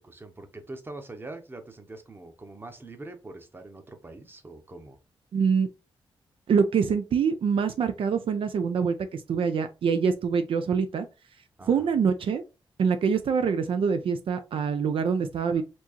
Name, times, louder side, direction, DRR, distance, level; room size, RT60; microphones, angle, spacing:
voice 1, 0.0-5.0 11.6-11.9, right 2 dB, 25° right, 0.9 m, -43 dB
voice 2, 5.3-5.7 6.5-11.1 11.7-12.4 12.8-15.6, right 6 dB, 70° right, 0.5 m, -25 dB
4.4 x 2.9 x 2.9 m
wide cardioid pair, 100°, 9 cm